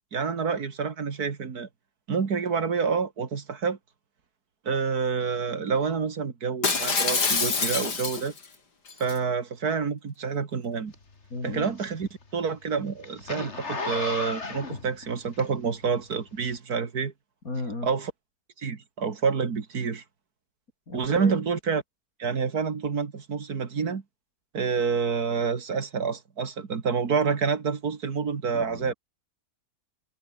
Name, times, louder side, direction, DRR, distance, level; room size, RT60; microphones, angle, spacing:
voice 1, 0.1-1.7 2.1-3.8 4.7-8.3 9.0-10.9 11.4-17.1 17.8-18.1 18.6-20.0 20.9-21.8 22.2-24.0 24.5-28.9, right 5 dB, 70° right, 2.5 m, -28 dB
Shatter, 6.6-8.4 8.9-9.2, left 4 dB, 85° left, 3.6 m, -26 dB
Zipper (clothing), 10.9-15.9 16.4-16.6, left 3 dB, 45° left, 2.8 m, -35 dB
voice 2, 11.3-11.7 17.4-17.9 20.9-21.4 28.5-28.9, left 2 dB, 60° left, 5.8 m, -35 dB
omnidirectional pair, 1.7 m